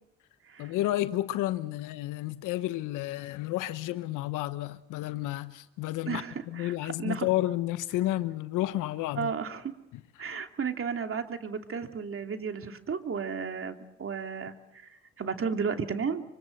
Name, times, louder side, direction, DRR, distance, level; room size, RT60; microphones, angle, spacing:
voice 1, 0.6-9.3, left 15 dB, 80° left, 1.1 m, -31 dB
voice 2, 6.0-7.3 9.2-9.7 10.2-14.5 14.8-16.2, right 6 dB, 45° right, 2.8 m, -33 dB
25.5 x 25.0 x 6.6 m
supercardioid pair, 65°, 31 cm